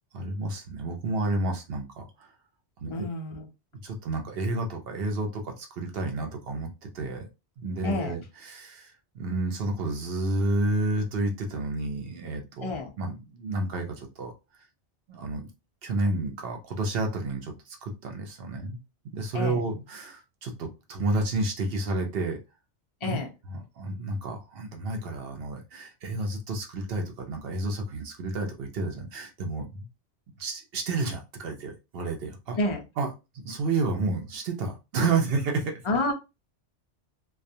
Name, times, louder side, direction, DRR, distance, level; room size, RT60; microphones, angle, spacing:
voice 1, 0.1-2.3 2.8-3.0 3.8-7.3 7.6-14.3 15.1-15.5 15.8-18.8 19.1-22.4 23.0-23.2 23.5-29.9 30.4-32.6 33.0-33.1 33.4-35.8, right 2 dB, 60° right, 0.8 m, -30 dB
voice 2, 2.9-3.5 7.8-8.1 12.6-12.9 19.3-19.6 23.0-23.3 32.6-32.9 35.8-36.1, left 2 dB, 55° left, 0.3 m, -29 dB
2.3 x 2.2 x 2.6 m
omnidirectional pair, 1.2 m